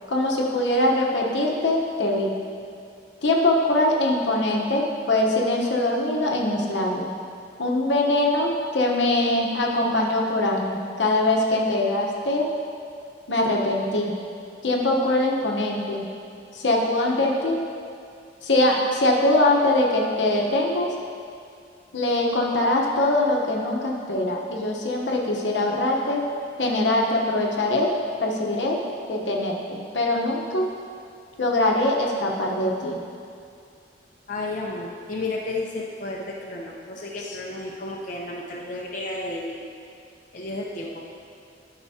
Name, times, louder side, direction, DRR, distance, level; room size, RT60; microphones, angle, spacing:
voice 1, 0.1-2.3 3.2-7.1 7.6-12.5 13.3-14.1 14.6-16.1 16.5-17.6 18.4-20.9 21.9-26.2 26.6-27.9 28.2-28.8 29.1-30.7 31.4-33.0, left 1 dB, 80° left, -1 dB, 1.0 m, -22 dB
voice 2, 34.3-39.7 40.3-41.0, left 2 dB, 45° left, -3 dB, 0.7 m, -32 dB
12.5 x 5.9 x 2.8 m, 2.4 s
head